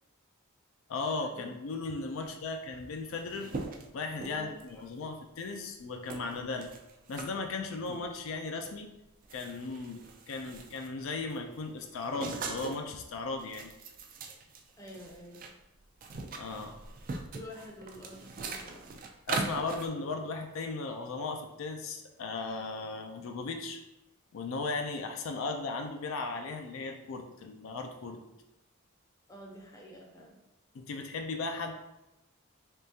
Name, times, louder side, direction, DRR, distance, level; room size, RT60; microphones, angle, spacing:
voice 1, 0.9-3.5 3.9-6.7 7.1-8.9 9.3-13.7 16.3-16.8 19.3-23.8 24.3-28.2 30.7-31.7, left 3 dB, 70° left, 4 dB, 0.4 m, -36 dB
sound 1, 2.6-2.7 2.9-4.9 5.4-5.6 6.1-7.3 7.9-8.1 8.6-8.8 9.1-11.0 11.3-12.9 13.3-15.5 15.8-19.9, right 4 dB, 40° right, 0.3 m, -41 dB
voice 2, 4.3-4.8 14.8-15.5 17.3-19.1 29.3-30.4, equal, 15° left, -1 dB, 0.5 m, -48 dB
3.6 x 3.3 x 2.7 m, 0.94 s
head